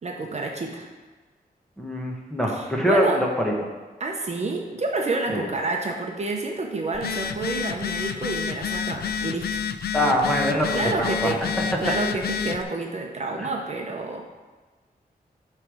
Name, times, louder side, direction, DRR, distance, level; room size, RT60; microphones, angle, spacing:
voice 1, 0.0-0.9 2.5-3.2 4.0-9.6 10.7-11.4 11.8-14.3, right 3 dB, 45° right, 1 dB, 0.8 m, -29 dB
voice 2, 1.8-3.5 5.3-5.5 9.9-11.5 11.8-11.9 13.4-13.5, equal, 5° left, -2 dB, 1.1 m, -24 dB
Telephone, 6.9-12.6, left 7 dB, 85° left, 0.4 m, -29 dB
9.7 x 3.3 x 6.1 m, 1.3 s
wide cardioid pair, 180°, 16 cm